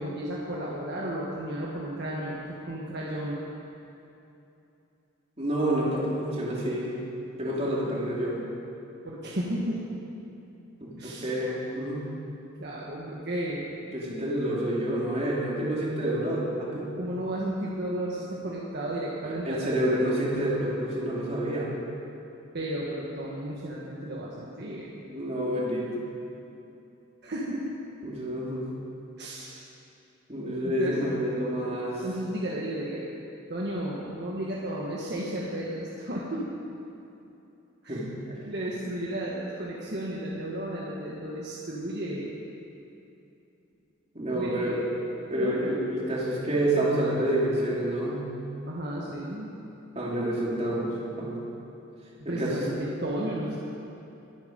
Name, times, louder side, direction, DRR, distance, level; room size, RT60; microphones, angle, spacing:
voice 1, 0.0-3.4 9.0-9.8 11.0-11.3 12.6-13.7 17.0-19.7 22.5-25.0 27.2-27.8 29.2-29.7 30.6-31.0 32.0-33.2 33.5-36.5 37.8-38.0 38.3-42.3 44.3-44.8 45.4-45.6 48.7-49.5 52.3-53.6, right 1 dB, 55° right, -4 dB, 1.6 m, -33 dB
voice 2, 5.4-7.0 7.4-8.4 10.8-12.1 13.9-16.9 19.2-21.8 25.0-26.0 28.0-28.6 30.3-32.0 37.9-38.0 38.3-38.4 44.1-44.8 45.3-48.3 49.9-51.4 52.2-52.6, right 1 dB, 30° right, -5 dB, 2.9 m, -28 dB
23.0 x 9.5 x 5.3 m, 2.8 s
head